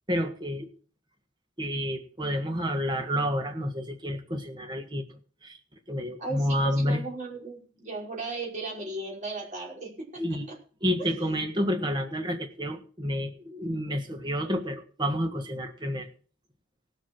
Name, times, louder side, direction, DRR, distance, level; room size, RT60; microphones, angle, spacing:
voice 1, 0.1-0.7 1.6-5.0 5.4-5.6 5.9-7.0 10.2-10.5 10.8-16.1, equal, 20° right, 5 dB, 1.6 m, -29 dB
voice 2, 6.2-10.6 11.0-11.4, right 2 dB, 35° right, -3 dB, 5.3 m, -36 dB
18.0 x 7.9 x 4.7 m, 0.41 s
head